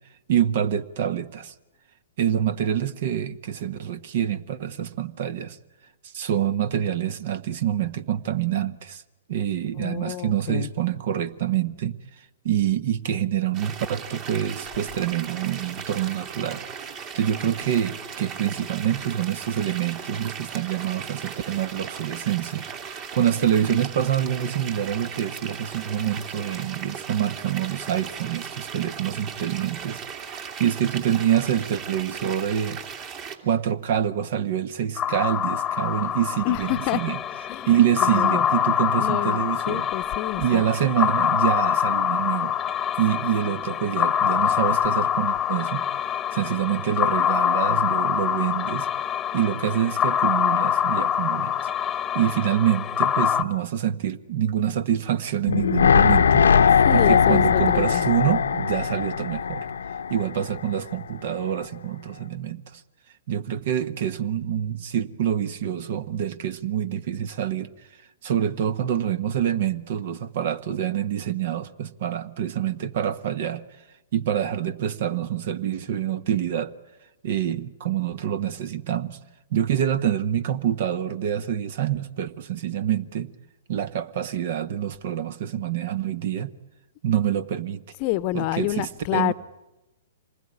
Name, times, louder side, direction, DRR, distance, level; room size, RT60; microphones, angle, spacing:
voice 1, 0.3-1.5 2.2-5.6 6.1-9.0 9.3-12.0 12.4-16.6 17.1-32.8 33.4-37.2 37.7-39.9 40.4-42.5 43.0-45.8 46.3-48.9 49.3-51.7 52.1-59.7 60.1-62.8 63.3-67.7 68.2-73.6 74.1-76.7 77.2-79.2 79.5-83.3 83.7-86.5 87.0-87.8 88.3-89.3, right 10 dB, 55° right, 1.2 m, -26 dB
voice 2, 9.8-10.7 36.4-37.2 37.5-38.5 39.0-40.6 56.8-58.1 88.0-89.3, left 16 dB, 40° left, 0.9 m, -28 dB
sound 1, 13.5-33.4, right 6 dB, 35° right, 2.7 m, -37 dB
sound 2, 35.0-53.4, left 9 dB, 20° left, 1.1 m, -25 dB
sound 3, 55.5-60.6 60.9-61.0, left 7 dB, 75° left, 0.9 m, -20 dB
26.5 x 20.0 x 9.8 m
hypercardioid pair, 120°, 0 cm